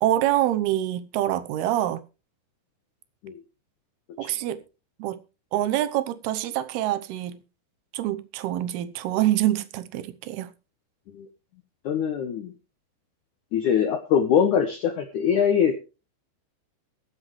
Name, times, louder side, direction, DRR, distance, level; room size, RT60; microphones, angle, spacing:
voice 1, 0.0-2.0 4.2-4.6 5.0-5.2 5.5-7.4 7.9-10.5, right 13 dB, 75° right, 2.6 m, -25 dB
voice 2, 11.8-12.5 13.5-15.7, left 8 dB, 85° left, 1.7 m, -22 dB
22.5 x 8.0 x 3.2 m
omnidirectional pair, 5.1 m